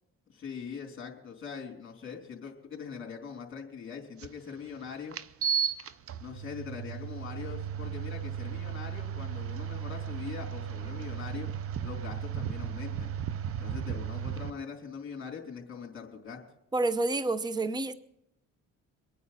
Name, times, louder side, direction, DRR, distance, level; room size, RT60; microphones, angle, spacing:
voice 1, 0.3-5.2 6.2-11.5 11.8-13.1 13.6-16.4, left 6 dB, 40° left, 1 dB, 3.6 m, -42 dB
sound 1, 4.2-4.3 5.1-14.5, right 8 dB, 50° right, 0.7 m, -35 dB
voice 2, 16.7-17.9, right 2 dB, 15° right, 14 dB, 0.7 m, -28 dB
23.5 x 9.3 x 4.2 m, 0.79 s
cardioid pair, 90°, 30 cm